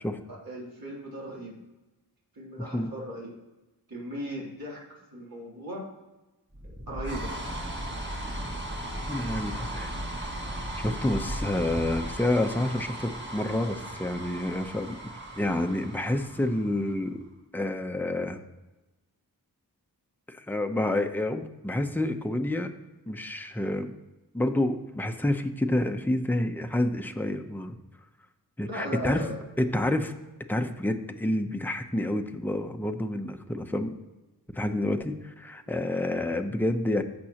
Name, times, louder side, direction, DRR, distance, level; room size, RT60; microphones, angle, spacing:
voice 1, 0.4-1.6 2.3-3.3 3.9-5.9 6.9-7.3 28.6-29.4, equal, 70° right, -4 dB, 3.1 m, -37 dB
sound 1, 6.5-17.0, right 1 dB, 30° right, 1.7 m, -36 dB
voice 2, 9.1-9.9 10.8-15.0 15.4-17.2 17.5-18.4 20.3-22.7 23.1-23.9 24.3-27.8 28.6-29.3 29.6-30.1 30.5-34.0 34.5-37.0, left 1 dB, 5° left, 6 dB, 0.7 m, -28 dB
15.0 x 6.2 x 2.9 m, 1.1 s
wide cardioid pair, 70°, 38 cm